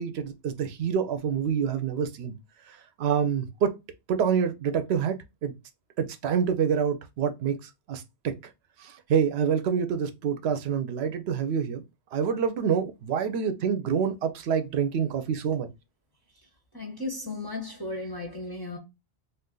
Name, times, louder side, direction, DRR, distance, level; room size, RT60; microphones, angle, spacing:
voice 1, 0.0-2.3 2.7-3.7 4.1-5.2 5.4-5.5 6.0-8.3 8.8-11.8 12.1-15.7, right 7 dB, 75° right, 0.8 m, -27 dB
voice 2, 16.7-18.8, left 2 dB, 30° left, 0.5 m, -35 dB
2.5 x 2.4 x 3.6 m
omnidirectional pair, 1.1 m